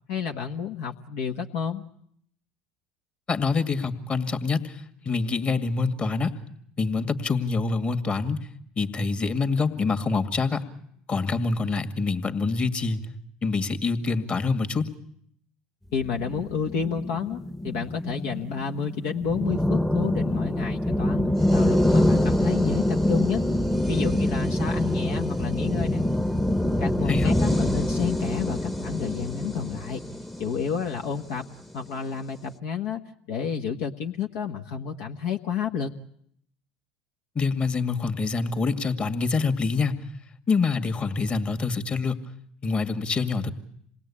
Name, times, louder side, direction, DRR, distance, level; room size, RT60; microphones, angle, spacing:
voice 1, 0.1-1.8 15.9-23.4 23.9-26.0 26.8-30.0 30.4-31.4 31.7-33.0 33.3-35.9, left 7 dB, 65° left, 3 dB, 1.4 m, -30 dB
voice 2, 3.3-4.7 5.1-6.3 6.8-8.4 8.8-10.6 11.1-13.1 13.4-14.9 27.1-27.3 37.4-40.0 40.5-42.2 42.6-43.5, left 4 dB, 30° left, 9 dB, 2.1 m, -25 dB
sound 1, 16.0-31.5, left 1 dB, 5° left, 1.0 m, -25 dB
27.5 x 20.0 x 8.7 m, 0.70 s
hypercardioid pair, 70°, 4 cm